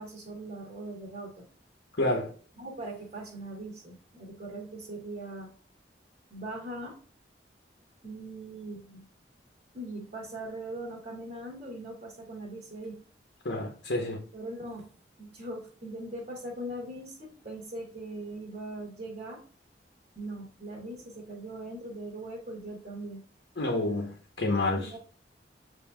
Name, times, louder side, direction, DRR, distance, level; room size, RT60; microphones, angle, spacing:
voice 1, 0.0-1.4 2.6-5.5 6.3-7.0 8.0-9.1 9.7-13.0 14.3-14.9 15.2-19.4 20.1-23.2 24.8-25.0, right 1 dB, 45° right, 1.2 m, -40 dB
voice 2, 2.0-2.3 13.4-14.2 23.6-24.1 24.4-24.9, left 2 dB, 80° left, 0.9 m, -28 dB
7.0 x 2.8 x 2.3 m
head